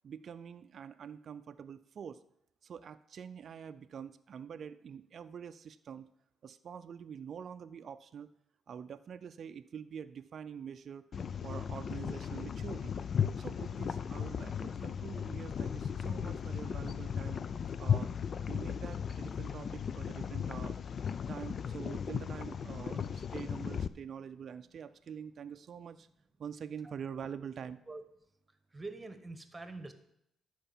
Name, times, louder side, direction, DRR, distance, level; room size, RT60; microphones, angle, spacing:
voice 1, 0.0-2.2 2.6-6.1 6.4-8.3 8.7-11.0 11.4-12.9 13.4-17.4 17.8-18.1 18.5-20.8 21.3-26.1 26.4-27.8, right 7 dB, 55° right, 10 dB, 0.4 m, -45 dB
sound 1, 11.1-23.9, left 7 dB, 50° left, 0.4 m, -36 dB
voice 2, 28.7-29.9, right 3 dB, 20° right, 9 dB, 1.2 m, -44 dB
11.5 x 4.8 x 7.1 m, 0.78 s
cardioid pair, 90°, 0 cm